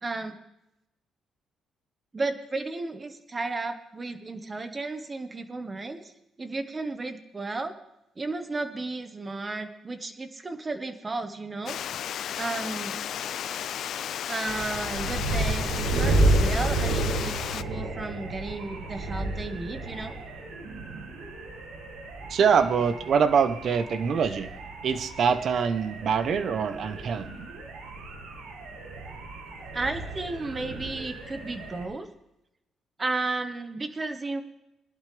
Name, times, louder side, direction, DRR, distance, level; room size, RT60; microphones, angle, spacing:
voice 1, 0.0-0.4 2.1-6.1 6.4-7.7 8.2-11.8 12.4-13.0 14.3-20.2 29.7-32.1 33.0-34.4, right 3 dB, 25° right, 8 dB, 1.5 m, -33 dB
Water, 11.7-17.6, left 10 dB, 70° left, 0.4 m, -33 dB
sound 1, 14.5-31.9, right 2 dB, 90° right, 2.4 m, -31 dB
voice 2, 22.3-24.5 24.8-27.3, right 6 dB, 60° right, 11 dB, 1.0 m, -24 dB
20.5 x 11.5 x 3.5 m, 0.87 s
cardioid pair, 90°, 0 cm